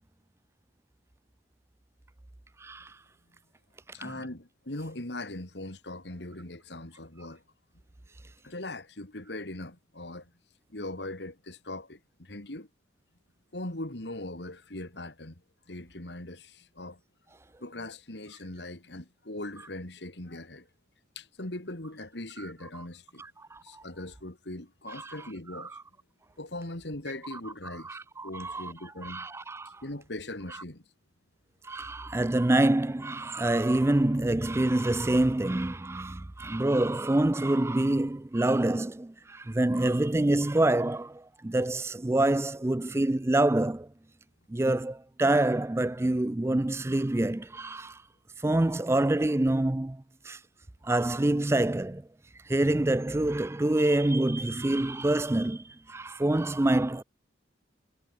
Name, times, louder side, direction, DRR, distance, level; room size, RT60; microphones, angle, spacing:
voice 1, 2.6-2.9 4.0-4.1 23.5-23.8 25.0-25.2 25.6-25.7 27.3-27.4 27.8-28.7 29.0-29.8 31.6-43.9 44.5-48.0 48.4-50.4 50.8-52.1 52.5-57.0, right 1 dB, 15° right, 0.4 m, -26 dB
voice 2, 3.9-7.4 8.4-10.3 10.7-12.7 13.5-15.4 15.7-17.0 17.6-20.7 21.1-23.2 23.6-25.8 26.4-28.0 28.2-29.3 29.8-30.8, left 1 dB, 70° left, 2.8 m, -40 dB
head